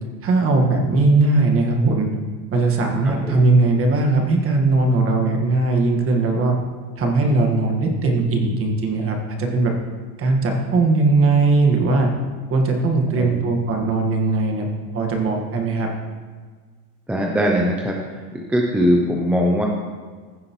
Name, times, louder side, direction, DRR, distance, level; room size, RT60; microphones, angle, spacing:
voice 1, 0.2-2.1 2.5-6.6 7.0-9.7 10.2-12.1 12.5-14.7 14.9-15.9, right 3 dB, 30° right, 2 dB, 1.5 m, -19 dB
voice 2, 3.0-3.5 13.2-13.8 17.1-19.7, equal, 5° right, -1 dB, 0.4 m, -21 dB
15.0 x 7.6 x 3.1 m, 1.5 s
cardioid pair, 155°, 45 cm